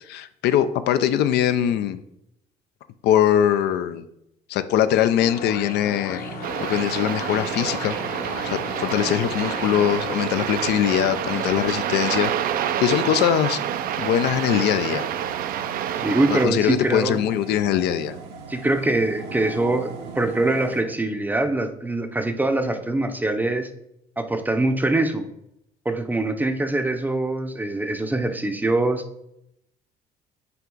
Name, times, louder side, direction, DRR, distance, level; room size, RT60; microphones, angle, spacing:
voice 1, 0.1-2.0 3.0-4.0 4.5-6.2 6.6-12.3 12.8-13.6 14.0-15.0 16.3-18.1, left 10 dB, 80° left, 11 dB, 0.4 m, -22 dB
sound 1, 5.2-10.1, left 4 dB, 60° left, 1.0 m, -35 dB
sound 2, 6.2-20.8, right 5 dB, 85° right, 0.8 m, -40 dB
sound 3, 6.4-16.5, right 10 dB, 60° right, 0.4 m, -28 dB
voice 2, 16.0-17.2 18.5-23.7 24.2-25.3 25.9-29.0, right 2 dB, 10° right, 7 dB, 0.5 m, -23 dB
5.7 x 4.6 x 3.8 m, 0.81 s
cardioid pair, 110°, 17 cm